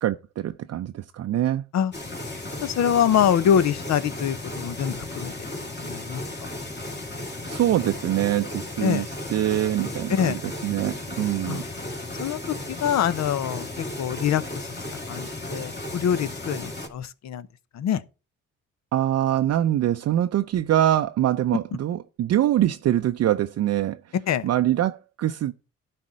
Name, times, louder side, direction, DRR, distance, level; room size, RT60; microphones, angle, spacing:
voice 1, 0.0-1.6 7.5-11.6 18.9-24.1 24.4-25.5, right 12 dB, 55° right, 0.5 m, -24 dB
sound 1, 1.9-16.9, left 2 dB, 35° left, 2.6 m, -35 dB
voice 2, 2.6-5.3 5.8-6.2 8.8-9.0 10.1-10.4 11.5-11.7 12.2-14.8 15.1-17.5 17.7-18.0 24.3-24.5, left 9 dB, 65° left, 0.8 m, -25 dB
12.0 x 4.3 x 6.2 m
cardioid pair, 90°, 30 cm